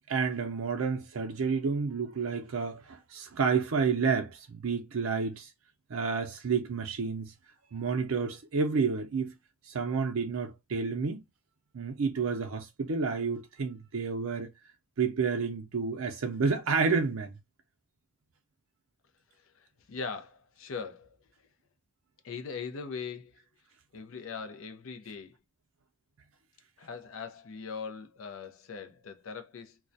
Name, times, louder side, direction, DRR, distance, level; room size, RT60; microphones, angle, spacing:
voice 1, 0.1-5.5 5.9-7.3 7.7-9.3 9.7-11.2 11.7-14.5 15.0-17.3, right 5 dB, 80° right, 0.5 m, -30 dB
voice 2, 19.5-21.2 22.2-23.3 23.9-25.4 26.8-29.8, left 5 dB, 70° left, 0.5 m, -40 dB
2.3 x 2.1 x 2.5 m
head